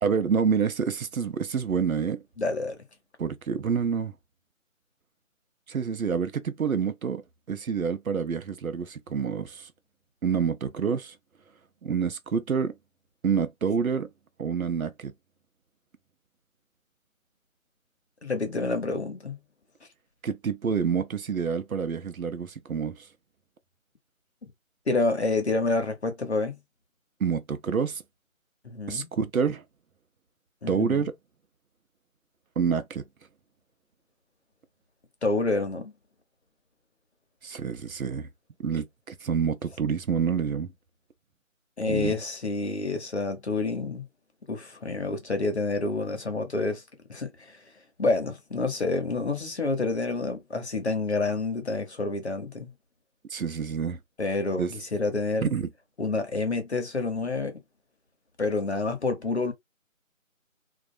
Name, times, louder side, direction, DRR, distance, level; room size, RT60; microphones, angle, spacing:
voice 1, 0.0-2.2 3.2-4.1 5.7-7.2 7.5-9.7 10.2-11.2 11.8-12.7 13.2-14.1 14.4-15.1 20.2-23.1 27.2-28.0 28.9-29.6 30.7-31.1 32.6-33.0 37.4-38.3 38.6-40.7 41.9-42.2 53.3-54.0 54.6-54.7 55.4-55.7, right 6 dB, 85° right, 0.7 m, -27 dB
voice 2, 2.4-2.8 18.2-19.4 24.4-24.5 24.9-26.6 28.6-29.1 30.6-31.1 35.2-35.9 41.8-44.0 44.5-46.8 47.1-47.6 48.0-52.7 54.2-55.5 56.0-57.6 58.4-59.5, left 3 dB, 50° left, 0.8 m, -28 dB
2.4 x 2.1 x 2.5 m
figure-of-eight pair, 175°, 41 cm